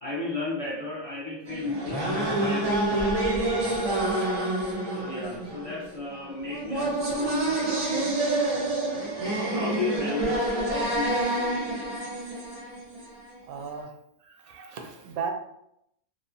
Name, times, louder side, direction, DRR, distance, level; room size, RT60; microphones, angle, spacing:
voice 1, 0.0-4.2 4.9-8.1 9.1-11.5, left 2 dB, 40° left, -7 dB, 0.5 m, -34 dB
sound 1, 1.5-13.3, right 2 dB, 45° right, 0.4 m, -28 dB
voice 2, 13.5-13.9 14.2-15.3, right 6 dB, 80° right, 3 dB, 1.0 m, -35 dB
3.1 x 2.0 x 2.5 m, 0.77 s
omnidirectional pair, 1.5 m